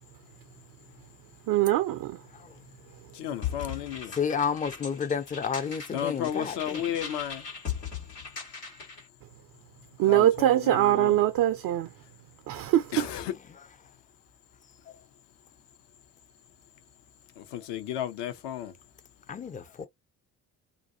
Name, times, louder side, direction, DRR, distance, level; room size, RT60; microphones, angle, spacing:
voice 1, 1.5-2.0 10.0-11.9 12.5-13.0, right 13 dB, 50° right, 0.5 m, -22 dB
voice 2, 3.2-4.1 5.9-7.4 10.0-11.2 12.9-13.3 17.5-18.7, left 10 dB, 65° left, 0.8 m, -33 dB
sound 1, 3.4-9.0, left 7 dB, 90° left, 1.3 m, -39 dB
voice 3, 4.1-6.9 13.0-13.6 19.3-19.9, left 6 dB, 20° left, 0.4 m, -31 dB
2.5 x 2.3 x 2.5 m
figure-of-eight pair, 40°, 47 cm